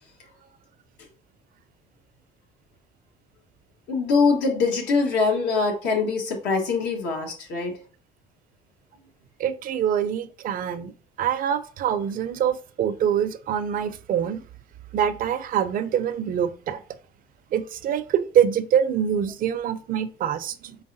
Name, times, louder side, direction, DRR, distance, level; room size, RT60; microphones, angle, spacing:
voice 1, 3.9-7.7, left 4 dB, 80° left, 1.3 m, -23 dB
voice 2, 9.4-10.9 11.2-14.4 14.9-16.8 17.5-20.8, right 9 dB, 50° right, 0.5 m, -25 dB
4.6 x 3.4 x 2.6 m
supercardioid pair, 90°, 18 cm